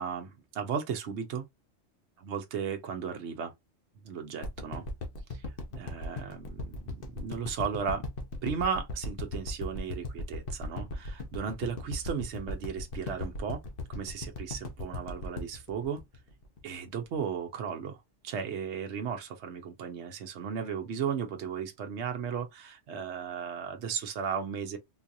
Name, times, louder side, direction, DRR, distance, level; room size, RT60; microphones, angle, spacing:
voice 1, 0.0-1.4 2.2-3.5 4.0-4.9 5.3-5.5 5.7-8.0 8.4-13.6 13.9-16.0 16.6-24.8, right 7 dB, 70° right, 1.0 m, -35 dB
sound 1, 4.4-16.8 17.2-17.3, left 2 dB, 50° left, 1.0 m, -37 dB
3.9 x 2.4 x 2.7 m
omnidirectional pair, 1.2 m